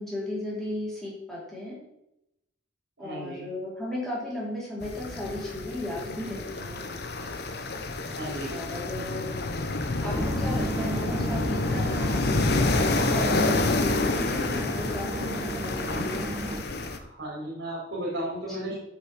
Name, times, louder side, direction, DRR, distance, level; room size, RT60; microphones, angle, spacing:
voice 1, 0.0-1.8 3.0-6.9 8.5-9.4 10.0-16.3 18.5-18.7, left 1 dB, ahead, -6 dB, 3.9 m, -35 dB
voice 2, 3.0-3.5 8.1-8.6 16.8-18.7, right 1 dB, 75° right, -5 dB, 3.8 m, -35 dB
sound 1, 4.8-17.0, left 2 dB, 60° left, 1.0 m, -28 dB
sound 2, 10.1-16.6, right 2 dB, 15° right, 0.4 m, -35 dB
8.4 x 6.3 x 6.2 m, 0.84 s
head